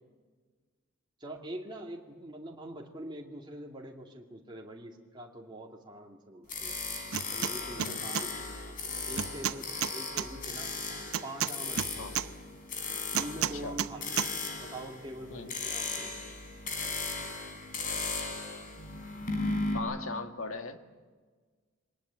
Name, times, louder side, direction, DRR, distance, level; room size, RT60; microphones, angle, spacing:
voice 1, 1.2-6.7 7.3-10.7 11.2-12.1 13.2-14.3 14.5-16.2, right 1 dB, 20° right, 0 dB, 2.2 m, -44 dB
sound 1, 6.5-19.8, left 3 dB, 40° left, 3.9 m, -37 dB
sound 2, 7.1-7.5 7.8-8.3 9.2-10.3 11.1-12.3 13.1-13.9 14.2-14.3, right 9 dB, 80° right, 0.7 m, -31 dB
voice 2, 13.4-13.8 15.3-15.6 19.7-20.8, left 3 dB, 75° left, 7 dB, 1.8 m, -39 dB
23.5 x 20.0 x 8.8 m, 1.4 s
head